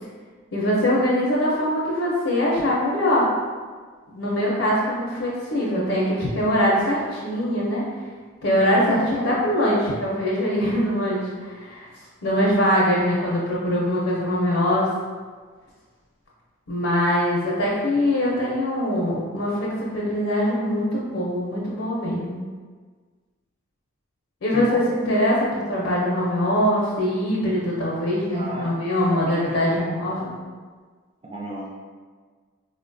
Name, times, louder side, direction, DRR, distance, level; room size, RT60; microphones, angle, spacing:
voice 1, 0.5-3.3 4.1-7.8 8.4-11.9 12.2-14.9 16.7-22.4 24.4-30.3, equal, 65° left, -5 dB, 0.5 m, -22 dB
voice 2, 24.5-24.9 28.3-29.9 31.2-31.7, right 1 dB, 25° right, -4 dB, 0.4 m, -35 dB
4.1 x 2.1 x 2.5 m, 1.5 s
head